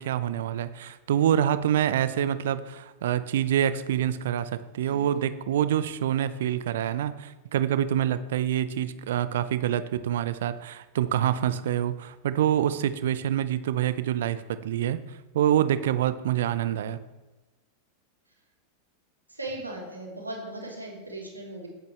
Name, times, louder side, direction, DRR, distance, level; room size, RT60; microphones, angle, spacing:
voice 1, 0.0-15.0 15.3-17.0, right 10 dB, 60° right, 14 dB, 0.6 m, -26 dB
voice 2, 19.3-21.7, right 2 dB, 85° right, -2 dB, 2.8 m, -38 dB
17.0 x 8.1 x 3.3 m, 1.1 s
figure-of-eight pair, 90°, 0 cm